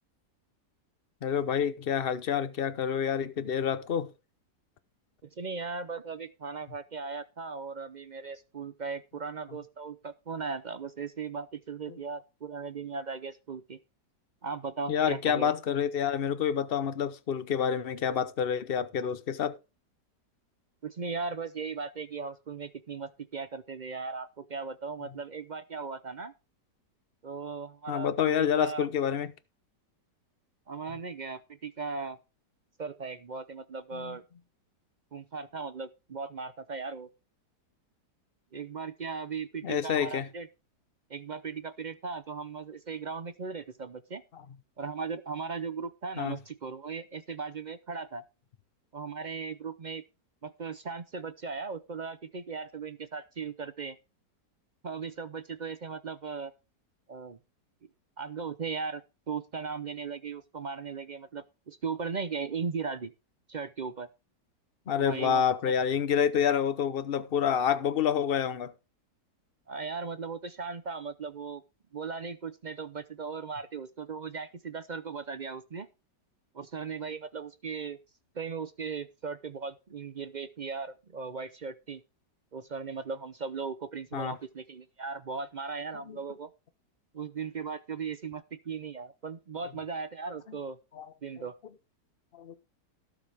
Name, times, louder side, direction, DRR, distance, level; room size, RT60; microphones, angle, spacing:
voice 1, 1.2-4.1 14.9-19.5 27.9-29.3 33.9-34.2 39.6-40.3 46.2-46.4 64.9-68.7 84.1-84.4 86.1-86.2 91.0-91.1 92.3-92.5, left 8 dB, 45° left, 0.8 m, -28 dB
voice 2, 5.2-13.8 14.4-15.5 20.8-26.3 27.2-28.1 28.4-28.9 30.7-32.2 32.8-34.2 35.1-37.1 38.5-40.5 41.1-44.2 44.8-48.2 48.9-50.0 50.4-54.0 54.8-56.5 57.1-57.4 58.2-59.0 59.3-63.1 63.5-64.1 65.0-65.4 69.7-71.6 71.9-75.9 76.5-78.0 78.3-82.0 82.5-86.5 87.1-90.8 91.2-91.5, right 5 dB, 60° right, 0.4 m, -37 dB
18.0 x 7.1 x 3.5 m
omnidirectional pair, 1.8 m